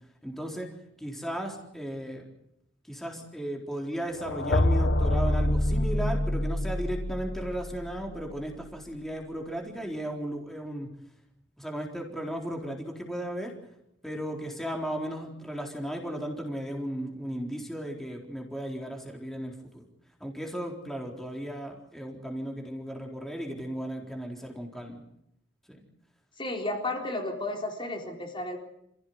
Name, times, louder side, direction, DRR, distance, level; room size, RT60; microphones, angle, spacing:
voice 1, 0.2-0.7 1.0-2.2 2.9-10.9 11.6-13.5 14.0-19.8 20.2-25.0 25.7-25.8, right 1 dB, ahead, 1 dB, 4.1 m, -35 dB
sound 1, 4.2-8.2, left 1 dB, 75° left, 1.6 m, -26 dB
voice 2, 26.4-28.6, left 2 dB, 25° left, 2 dB, 4.1 m, -33 dB
28.5 x 16.5 x 9.5 m, 0.78 s
head